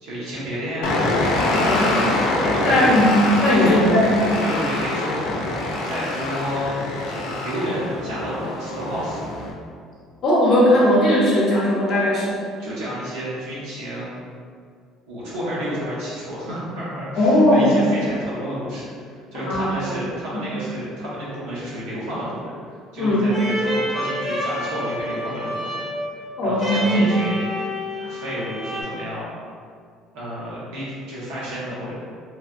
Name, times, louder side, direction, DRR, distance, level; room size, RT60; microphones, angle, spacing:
voice 1, 0.0-1.7 2.5-2.9 3.4-3.8 4.4-5.5 5.8-9.2 12.6-14.1 15.1-25.8 26.4-27.5 28.0-29.2 30.1-31.9, equal, 85° right, -8 dB, 1.1 m, -30 dB
sound 1, 0.8-9.5, left 2 dB, 75° left, 0.4 m, -25 dB
voice 2, 1.5-4.4 10.2-12.4 17.2-17.7 19.3-20.0 20.3-20.4 23.0-23.3 26.4-27.2, left 1 dB, 40° left, -6 dB, 0.7 m, -18 dB
sound 2, 23.3-28.8, equal, 15° right, 0.5 m, -28 dB
3.2 x 2.2 x 2.5 m, 2.1 s
cardioid pair, 170°, 0 cm